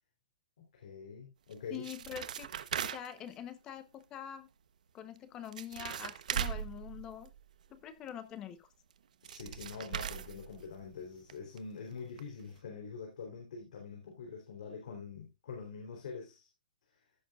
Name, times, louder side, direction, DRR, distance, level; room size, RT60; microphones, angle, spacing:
voice 1, 0.7-1.8 9.2-16.5, left 5 dB, 60° left, 3.6 m, -45 dB
sound 1, 1.5-3.3 5.2-5.3 5.5-7.7 8.9-9.0 9.2-11.0 11.3-11.4 11.6-11.7 12.2-12.3 12.6-12.7, right 8 dB, 60° right, 1.0 m, -39 dB
voice 2, 1.7-2.5 2.8-4.5 4.9-7.3 7.7-8.7, left 9 dB, 15° left, 0.9 m, -45 dB
15.5 x 7.2 x 2.4 m
hypercardioid pair, 175°, 5 cm